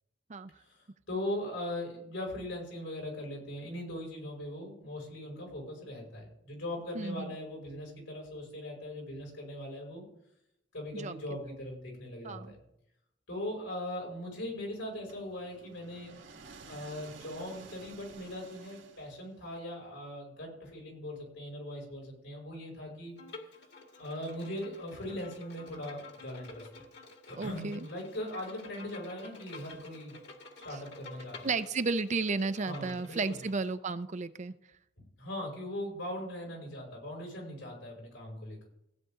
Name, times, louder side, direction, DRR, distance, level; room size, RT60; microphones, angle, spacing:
voice 1, 0.6-10.0 10.7-12.6 13.3-16.2 16.6-23.2 24.0-26.7 27.3-30.1 30.6-31.5 32.6-33.4 35.2-38.7, left 1 dB, 85° left, -1 dB, 5.6 m, -40 dB
voice 2, 6.9-7.4 10.9-11.1 12.2-12.5 27.4-27.9 30.7-30.8 31.4-34.5, right 3 dB, 40° right, 12 dB, 0.5 m, -33 dB
sound 1, 15.1-19.5, right 4 dB, 70° right, 2.0 m, -52 dB
Bowed string instrument, 23.2-33.7, left 3 dB, 60° left, 2.0 m, -50 dB
16.0 x 9.1 x 3.7 m, 0.78 s
head